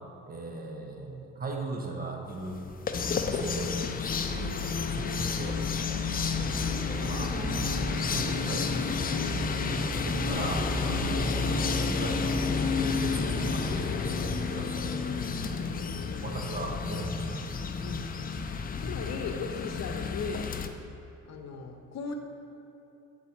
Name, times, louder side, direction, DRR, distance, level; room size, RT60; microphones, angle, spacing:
voice 1, 0.3-2.6 3.3-3.8 4.3-4.5 4.9-5.6 7.0-9.1 10.0-15.2 16.2-17.4, right 2 dB, 30° right, 1 dB, 1.0 m, -38 dB
sound 1, 2.5-20.7, left 4 dB, 30° left, 0.4 m, -30 dB
voice 2, 6.2-6.5 9.5-10.3 15.8-16.5 17.8-18.1 18.8-20.5 21.3-22.1, left 5 dB, 60° left, 4 dB, 0.8 m, -39 dB
sound 2, 6.3-13.7, equal, 10° left, 1.2 m, -39 dB
8.3 x 4.0 x 4.5 m, 2.9 s
cardioid pair, 90°, 30 cm